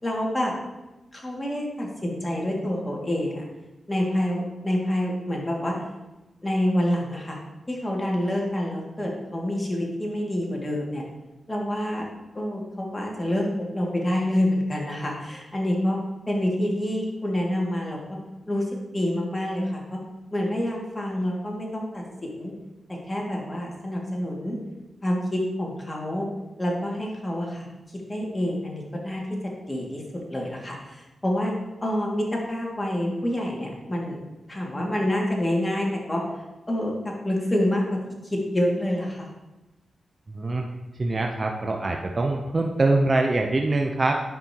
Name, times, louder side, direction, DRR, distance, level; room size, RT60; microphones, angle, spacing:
voice 1, 0.0-0.5 1.1-3.5 3.9-5.8 6.4-7.4 7.7-11.0 11.5-12.0 12.3-13.5 13.7-16.0 16.3-18.2 18.5-20.0 20.3-22.5 22.9-24.6 25.0-26.3 26.6-27.7 28.1-30.0 30.3-31.5 31.8-34.2 34.5-36.2 36.7-38.0 38.2-39.3, left 1 dB, 25° left, -2 dB, 2.3 m, -27 dB
voice 2, 40.3-40.7 41.0-44.2, right 2 dB, 45° right, 2 dB, 0.7 m, -24 dB
9.8 x 5.5 x 3.0 m, 1.0 s
cardioid pair, 50°, 0 cm